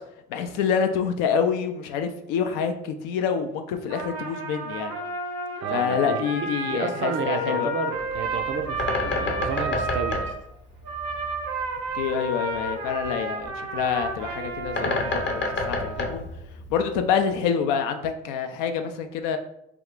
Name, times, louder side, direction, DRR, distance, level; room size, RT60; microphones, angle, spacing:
voice 1, 0.3-4.9 5.7-7.7 11.9-16.2 16.7-19.4, left 7 dB, 65° left, 7 dB, 0.5 m, -27 dB
Trumpet, 3.9-10.4 10.8-16.2, right 2 dB, 75° right, 0.8 m, -32 dB
voice 2, 5.6-10.3, right 5 dB, 35° right, 6 dB, 0.4 m, -31 dB
Bird, 8.0-17.1, left 2 dB, 30° left, 0.7 m, -31 dB
2.8 x 2.3 x 3.6 m, 0.78 s
hypercardioid pair, 50°, 34 cm